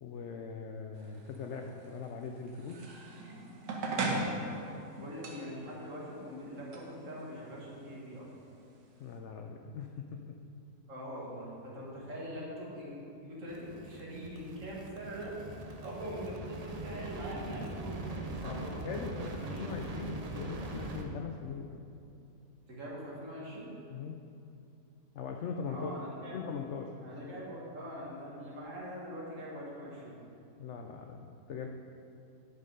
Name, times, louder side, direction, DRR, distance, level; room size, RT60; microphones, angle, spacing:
voice 1, 0.0-2.8 9.0-10.4 18.4-18.5 18.8-21.9 23.9-24.2 25.2-25.9 26.3-26.9 30.6-31.7, left 5 dB, 75° left, 3 dB, 0.6 m, -41 dB
sound 1, 1.0-9.2, right 2 dB, 65° right, 1.5 m, -40 dB
voice 2, 4.5-8.3 10.9-15.3 15.8-19.8 22.7-23.7 25.7-26.5 27.0-30.2, equal, 50° right, -5 dB, 2.1 m, -43 dB
sound 2, 13.5-21.0, right 2 dB, 85° right, 0.3 m, -41 dB
10.5 x 5.5 x 5.2 m, 2.7 s
omnidirectional pair, 1.8 m